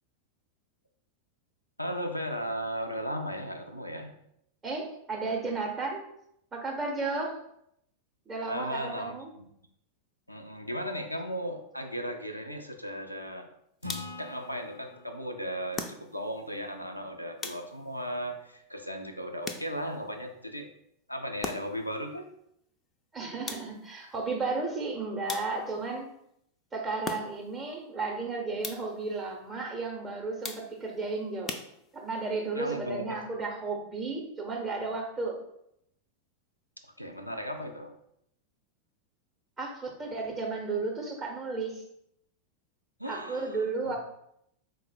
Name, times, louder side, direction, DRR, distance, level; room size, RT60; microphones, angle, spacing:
voice 1, 1.8-4.1 8.5-9.4 10.3-13.5 14.0-20.7 21.1-22.3 32.5-33.1 37.0-37.9 43.0-44.0, equal, 90° left, 4 dB, 0.4 m, -36 dB
voice 2, 4.6-6.0 6.5-7.4 8.3-9.3 23.1-26.1 26.7-31.6 31.9-35.4 39.6-41.8 43.0-44.0, right 3 dB, 20° right, 0 dB, 0.6 m, -33 dB
sound 1, 13.8-14.3 15.7-16.4 17.4-18.0 19.4-20.0 21.4-21.9 23.5-24.0 25.3-25.9 27.0-27.6 28.6-29.1 30.4-31.0 31.5-32.2, left 4 dB, 20° left, 0.3 m, -40 dB
Acoustic guitar / Strum, 13.8-17.3, left 2 dB, 90° right, 0.4 m, -46 dB
3.7 x 2.0 x 4.0 m, 0.75 s
figure-of-eight pair, 90°, 0 cm